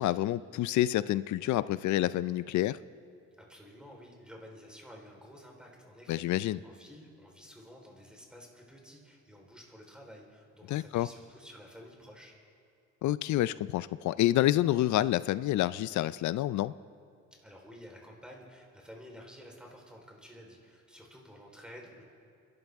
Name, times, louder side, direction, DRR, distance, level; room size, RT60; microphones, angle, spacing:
voice 1, 0.0-2.8 6.1-6.6 10.7-11.1 13.0-16.7, left 14 dB, 70° left, 17 dB, 0.5 m, -28 dB
voice 2, 3.4-12.4 17.4-22.0, equal, 5° right, 0 dB, 4.1 m, -51 dB
30.0 x 12.0 x 3.6 m, 2.6 s
cardioid pair, 90°, 30 cm